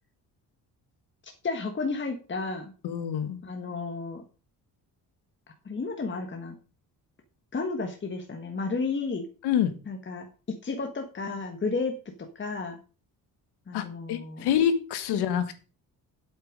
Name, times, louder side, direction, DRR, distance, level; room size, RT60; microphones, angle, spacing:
voice 1, 1.4-2.7 3.4-4.2 5.6-6.6 7.5-9.3 9.9-11.9 12.3-12.8 13.7-14.5 15.1-15.3, left 4 dB, 30° left, 4 dB, 1.5 m, -32 dB
voice 2, 2.8-3.4 9.4-9.7 13.7-15.6, left 9 dB, 90° left, 11 dB, 1.4 m, -26 dB
8.1 x 8.0 x 5.2 m, 0.35 s
cardioid pair, 100°, 38 cm